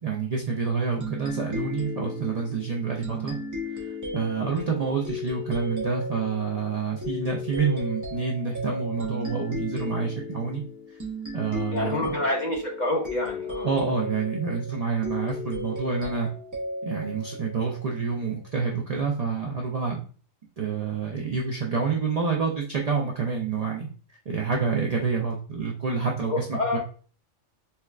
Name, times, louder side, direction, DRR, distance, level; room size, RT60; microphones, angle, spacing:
voice 1, 0.0-3.4 3.8-10.6 10.9-11.0 11.3-12.2 13.6-16.3 16.8-20.0 20.6-23.9 24.3-26.5 26.7-26.8, right 5 dB, 60° right, -1 dB, 0.4 m, -28 dB
sound 1, 1.0-18.2, left 2 dB, 20° right, 0.6 m, -35 dB
voice 2, 11.7-13.7 26.3-26.8, left 2 dB, 55° left, -1 dB, 0.5 m, -28 dB
4.3 x 2.2 x 2.3 m, 0.41 s
omnidirectional pair, 1.4 m